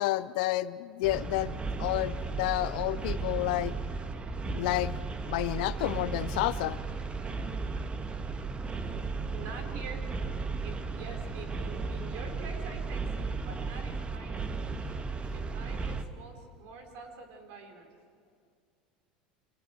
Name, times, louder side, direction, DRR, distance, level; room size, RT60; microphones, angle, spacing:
voice 1, 0.0-3.7 4.5-4.9 5.3-6.8, left 17 dB, 65° left, 16 dB, 0.6 m, -30 dB
sound 1, 1.0-16.0, right 4 dB, 25° right, 1.6 m, -35 dB
voice 2, 9.3-10.1 10.6-14.6 15.3-17.9, right 4 dB, 60° right, 4 dB, 4.4 m, -46 dB
30.0 x 24.5 x 4.6 m, 2.2 s
hypercardioid pair, 80°, 5 cm